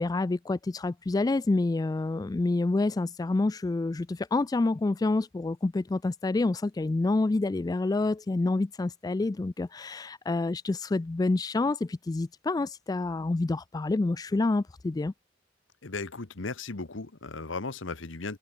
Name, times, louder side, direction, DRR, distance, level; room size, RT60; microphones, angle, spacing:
voice 1, 0.0-15.1, left 2 dB, 20° left, 0.3 m, -28 dB
voice 2, 15.8-18.4, left 3 dB, 80° left, 1.3 m, -36 dB
head